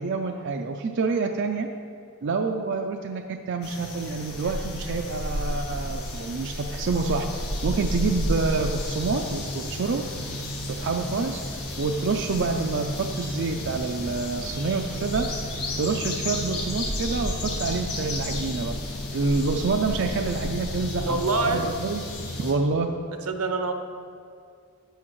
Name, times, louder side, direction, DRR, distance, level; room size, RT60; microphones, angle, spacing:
voice 1, 0.0-1.7 2.2-7.3 7.6-10.0 10.7-11.4 11.8-15.3 15.8-18.7 19.1-21.2 21.5-22.0 22.4-22.9, right 4 dB, 55° right, 3 dB, 0.4 m, -27 dB
sound 1, 3.6-22.5, left 1 dB, 80° left, 1.5 m, -32 dB
voice 2, 21.0-21.7 23.3-23.7, right 3 dB, 85° right, 6 dB, 0.8 m, -25 dB
12.0 x 8.3 x 3.1 m, 2.3 s
head